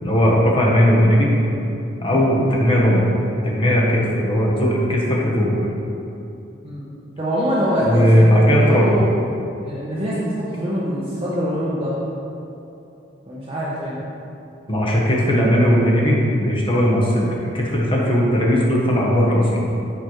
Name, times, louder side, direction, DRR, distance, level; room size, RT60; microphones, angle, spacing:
voice 1, 0.0-1.3 2.0-3.1 3.4-5.5 7.9-8.9 14.7-19.7, equal, 25° left, -3 dB, 1.0 m, -17 dB
voice 2, 7.2-9.1 9.6-12.0 13.3-14.0, equal, 30° right, -10 dB, 0.9 m, -24 dB
6.4 x 6.2 x 3.1 m, 2.8 s
head